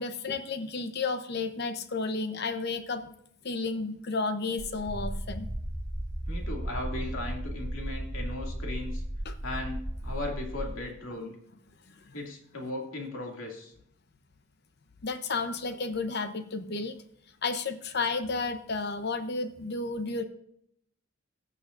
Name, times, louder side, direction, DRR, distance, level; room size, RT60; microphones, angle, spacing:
voice 1, 0.0-3.1 3.4-5.5 9.2-9.3 11.9-12.1 15.0-17.0 17.4-20.2, left 3 dB, 50° left, 9 dB, 0.8 m, -32 dB
sound 1, 4.6-10.7, right 1 dB, 15° right, 0.7 m, -35 dB
voice 2, 6.3-9.0 9.4-11.3 12.1-13.7, left 2 dB, 70° left, 0 dB, 2.4 m, -37 dB
18.0 x 6.8 x 2.5 m, 0.73 s
head